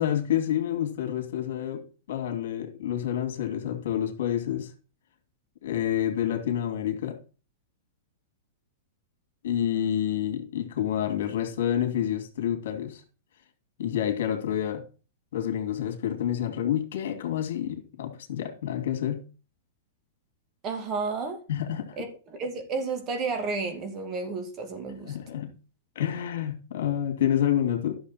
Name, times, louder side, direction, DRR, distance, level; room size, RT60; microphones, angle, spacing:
voice 1, 0.0-1.8 2.1-4.7 5.6-7.2 9.4-13.0 13.8-14.8 15.3-19.2 21.5-22.0 25.0-25.5 26.0-27.9, left 10 dB, 75° left, 2.4 m, -28 dB
voice 2, 20.6-21.4 22.0-25.2, right 4 dB, 30° right, 2.4 m, -32 dB
11.5 x 6.8 x 4.2 m
hypercardioid pair, 140°, 0 cm